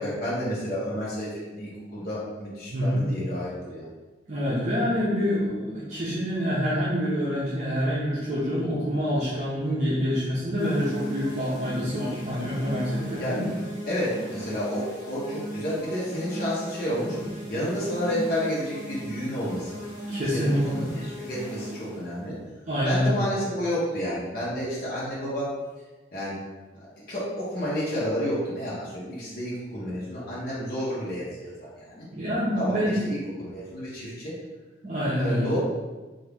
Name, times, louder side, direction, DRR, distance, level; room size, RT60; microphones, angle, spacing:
voice 1, 0.0-3.9 13.2-13.5 13.9-17.2 17.5-19.8 20.3-22.4 22.8-25.5 26.1-26.4 26.7-32.1 32.5-34.3 35.1-35.6, equal, 50° left, -8 dB, 0.9 m, -30 dB
voice 2, 2.7-3.0 4.3-13.4 20.1-20.8 22.7-23.1 32.1-32.9 34.8-35.5, equal, 40° right, -8 dB, 0.6 m, -26 dB
sound 1, 10.6-22.1, right 1 dB, 75° left, 1.1 m, -37 dB
2.9 x 2.6 x 3.5 m, 1.2 s
head